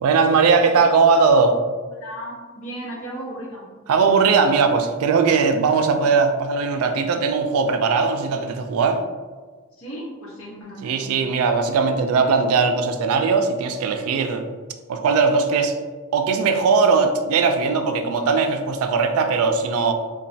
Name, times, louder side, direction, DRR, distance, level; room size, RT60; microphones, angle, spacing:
voice 1, 0.0-1.6 3.9-9.0 10.8-14.4 14.9-15.8 16.1-19.9, right 4 dB, 75° right, 6 dB, 0.3 m, -19 dB
voice 2, 2.0-3.7 9.7-11.1, right 1 dB, 70° left, -5 dB, 0.9 m, -35 dB
3.0 x 2.2 x 2.6 m, 1.4 s
head